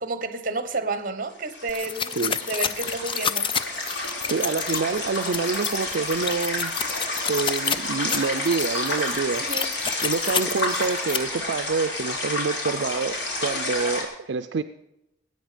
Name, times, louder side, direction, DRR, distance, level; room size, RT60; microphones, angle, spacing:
voice 1, 0.0-3.5 9.5-9.8, right 3 dB, 50° right, 1.1 m, -31 dB
sound 1, 1.3-14.0, left 2 dB, 65° left, 3.4 m, -30 dB
sound 2, 1.7-11.2, left 7 dB, 30° left, 0.4 m, -30 dB
voice 2, 4.3-6.7 7.3-9.5 10.0-14.6, right 4 dB, 70° right, 0.5 m, -27 dB
20.0 x 8.7 x 5.1 m
head